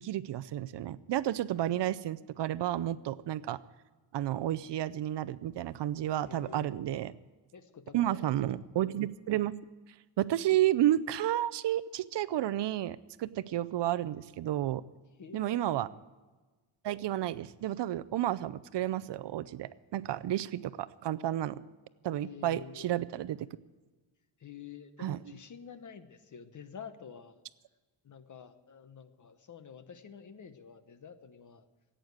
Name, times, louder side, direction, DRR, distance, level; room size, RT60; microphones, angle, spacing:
voice 1, 0.0-3.6 4.1-7.1 7.9-9.5 10.2-14.8 15.3-15.9 16.8-21.6 22.0-23.5 25.0-25.2, right 13 dB, 65° right, 15 dB, 0.6 m, -31 dB
voice 2, 6.3-7.0 7.5-8.7 15.2-15.8 22.2-23.0 24.4-27.4 28.0-31.7, left 7 dB, 40° left, 10 dB, 0.9 m, -49 dB
16.5 x 9.0 x 8.0 m, 1.3 s
wide cardioid pair, 170°, 47 cm